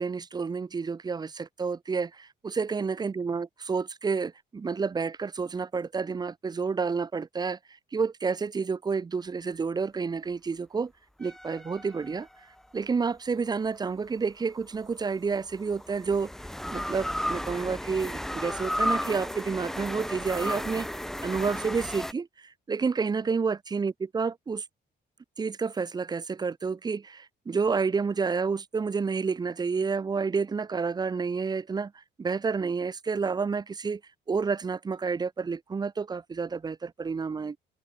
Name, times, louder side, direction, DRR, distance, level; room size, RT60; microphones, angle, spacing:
voice 1, 0.0-7.6 7.9-10.9 11.2-12.3 12.7-16.3 16.7-20.9 21.2-24.6 25.4-34.0 34.3-37.6, right 5 dB, 20° right, 1.2 m, -30 dB
sound 1, 11.2-12.7 14.6-22.1, equal, ahead, 1.0 m, -34 dB
cardioid pair, 175°, 18 cm